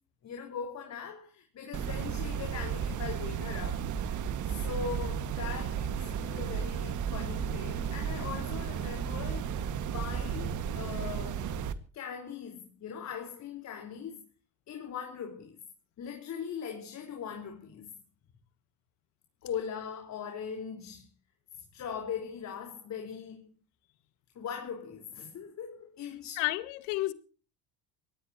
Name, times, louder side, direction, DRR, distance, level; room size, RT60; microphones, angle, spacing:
voice 1, 0.2-3.9 4.4-11.5 11.9-14.2 14.7-15.6 16.0-17.9 19.4-21.1 21.5-23.5 24.3-26.4, left 7 dB, 50° left, 4.4 m, -40 dB
sound 1, 1.7-11.7, right 7 dB, 55° right, 1.9 m, -34 dB
voice 2, 26.4-27.1, left 18 dB, 85° left, 1.9 m, -32 dB
24.0 x 18.5 x 2.9 m
supercardioid pair, 100°, 36 cm